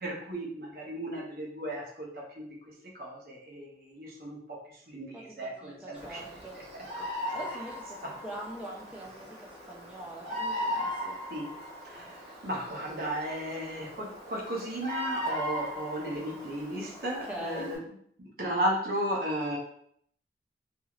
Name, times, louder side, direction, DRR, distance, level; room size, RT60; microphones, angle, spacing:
voice 1, 0.0-2.1 2.4-2.5 3.0-4.4 4.7-6.2 6.5-6.8 11.3-11.5 11.8-17.8 18.4-19.6, right 1 dB, 55° right, -3 dB, 0.8 m, -34 dB
voice 2, 5.6-6.6 7.3-8.0 8.2-11.2 17.0-17.7, right 1 dB, 5° right, -2 dB, 0.4 m, -42 dB
Bird vocalization bird call bird song, 5.9-17.8, left 1 dB, 30° right, 1.0 m, -38 dB
2.9 x 2.7 x 2.4 m, 0.67 s
head